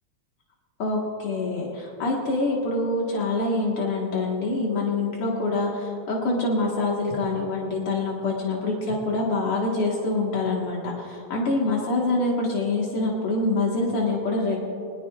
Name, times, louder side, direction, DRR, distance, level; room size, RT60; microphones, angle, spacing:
voice 1, 0.8-14.6, left 2 dB, 85° left, -2 dB, 2.6 m, -25 dB
23.0 x 20.5 x 2.4 m, 2.8 s
omnidirectional pair, 2.4 m